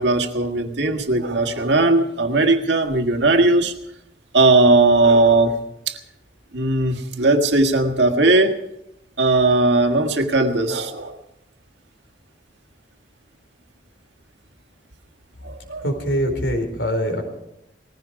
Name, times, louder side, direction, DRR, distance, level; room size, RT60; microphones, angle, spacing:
voice 1, 0.0-3.7 4.3-6.0 6.5-8.6 9.2-11.2 15.4-15.8, right 2 dB, 85° right, 5 dB, 1.7 m, -18 dB
voice 2, 15.8-17.2, equal, 85° left, 4 dB, 4.2 m, -23 dB
20.0 x 15.0 x 4.8 m, 0.84 s
head